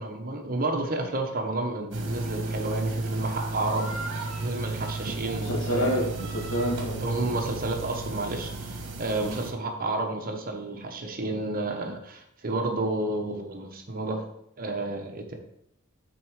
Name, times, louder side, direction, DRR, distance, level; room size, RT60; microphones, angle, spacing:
voice 1, 0.0-3.9 4.4-5.9 7.0-14.2 14.6-15.3, right 2 dB, 40° right, 3 dB, 1.0 m, -31 dB
sound 1, 1.9-9.5, right 3 dB, 60° right, 1.4 m, -33 dB
voice 2, 5.4-7.4 9.2-9.5, equal, 65° left, 0 dB, 1.7 m, -29 dB
7.5 x 4.4 x 4.7 m, 0.76 s
head